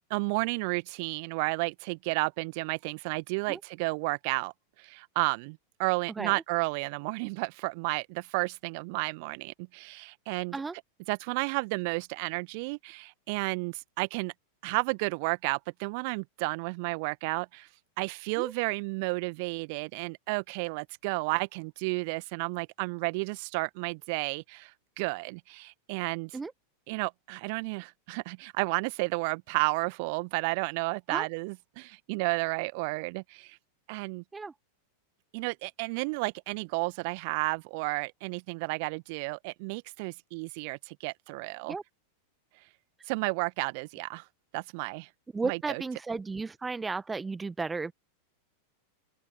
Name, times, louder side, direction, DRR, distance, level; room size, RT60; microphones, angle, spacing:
voice 1, 0.1-4.5 4.8-10.6 11.1-14.3 14.6-17.7 18.0-24.7 25.0-26.3 26.9-33.6 33.9-34.2 35.3-41.7 43.1-44.2 44.5-45.1 45.4-45.8, right 30 dB, 45° right, 1.5 m, -32 dB
voice 2, 45.3-47.9, right 4 dB, 10° right, 1.3 m, -34 dB
open air
figure-of-eight pair, 90°, 0 cm